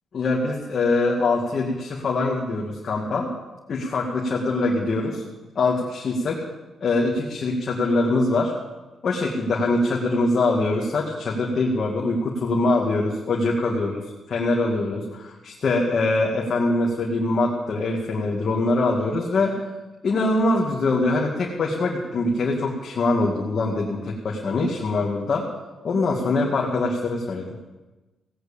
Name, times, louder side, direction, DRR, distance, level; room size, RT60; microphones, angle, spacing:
voice 1, 0.1-3.3 3.7-5.2 5.6-6.4 6.8-8.5 9.0-14.0 14.3-19.6 20.0-25.5 25.8-27.5, left 2 dB, 50° left, -3 dB, 2.3 m, -23 dB
17.0 x 9.6 x 6.9 m, 1.1 s
cardioid pair, 115°, 0 cm